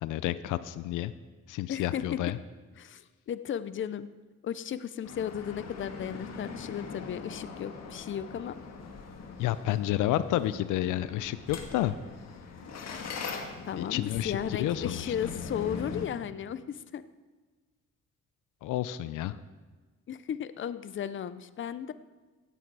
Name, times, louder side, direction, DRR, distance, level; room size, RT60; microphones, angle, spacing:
voice 1, 0.0-1.1 1.5-2.4 9.4-12.0 13.8-15.1 18.6-19.4, left 13 dB, 90° left, 15 dB, 0.6 m, -30 dB
voice 2, 1.7-2.0 2.8-4.1 4.4-8.5 12.8-13.1 13.7-17.0 20.1-21.9, left 9 dB, 40° left, 14 dB, 0.6 m, -35 dB
sound 1, 5.0-16.1, left 5 dB, 60° left, 1.8 m, -41 dB
16.5 x 8.6 x 4.7 m, 1.3 s
cardioid pair, 90°, 30 cm